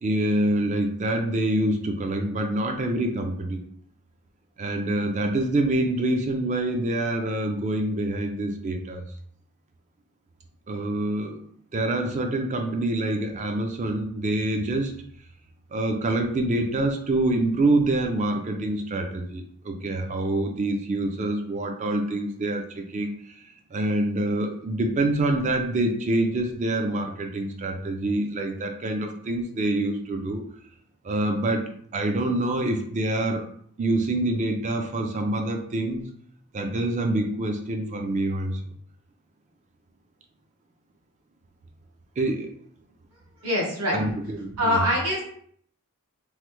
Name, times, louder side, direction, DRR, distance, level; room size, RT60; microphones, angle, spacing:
voice 1, 0.0-3.6 4.6-9.1 10.7-14.9 15.7-23.4 23.7-30.4 31.0-33.5 33.8-36.0 36.5-38.6 42.2-42.5 43.9-44.8, right 1 dB, 30° right, 4 dB, 0.3 m, -26 dB
voice 2, 43.4-44.0 44.6-45.2, equal, 85° right, -2 dB, 1.0 m, -23 dB
3.1 x 2.1 x 3.1 m, 0.63 s
head